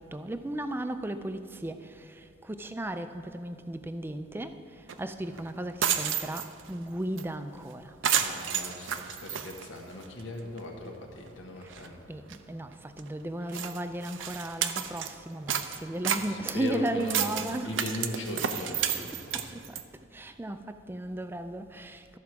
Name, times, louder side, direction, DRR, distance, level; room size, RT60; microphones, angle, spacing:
voice 1, 0.0-4.6 5.0-7.9 11.6-11.8 12.1-17.8 19.3-19.8 20.1-22.2, right 1 dB, 10° right, 0.4 m, -35 dB
sound 1, 4.9-5.0 5.3-5.4 5.7-6.7 7.2-7.3 7.5-7.7 8.0-10.2 10.6-10.7 11.3-11.4 11.6-11.9 12.3-12.4 13.0-13.1 13.5-15.1 15.5-19.8, right 8 dB, 90° right, 0.6 m, -31 dB
voice 2, 8.2-12.0 16.1-19.5, left 2 dB, 85° left, 1.3 m, -39 dB
13.5 x 4.8 x 5.9 m
head